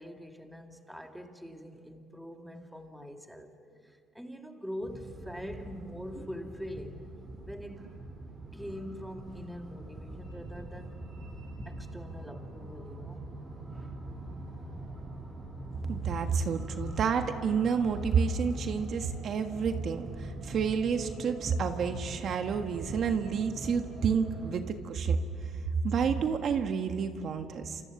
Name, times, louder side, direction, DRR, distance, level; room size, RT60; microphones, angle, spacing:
voice 1, 0.0-3.5 3.8-7.1 7.4-7.8 8.5-11.2 11.5-13.3 13.6-14.1, equal, ahead, 4 dB, 2.1 m, -44 dB
sound 1, 4.8-24.6, right 2 dB, 25° right, 6.6 m, -43 dB
voice 2, 15.9-25.2 25.8-27.8, right 6 dB, 50° right, 6 dB, 1.5 m, -29 dB
29.0 x 27.5 x 7.2 m, 2.2 s
cardioid pair, 125°, 0 cm